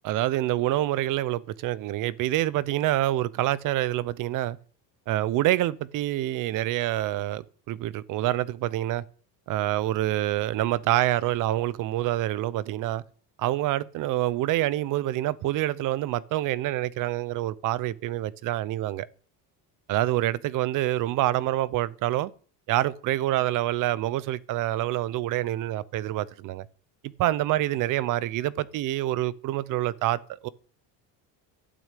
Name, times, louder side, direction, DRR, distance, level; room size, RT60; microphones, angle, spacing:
voice 1, 0.0-4.6 5.1-9.0 9.5-13.0 13.4-19.1 19.9-22.3 22.7-26.7 27.2-30.5, right 15 dB, 45° right, 0.7 m, -26 dB
12.0 x 6.3 x 9.0 m
cardioid pair, 175°, 43 cm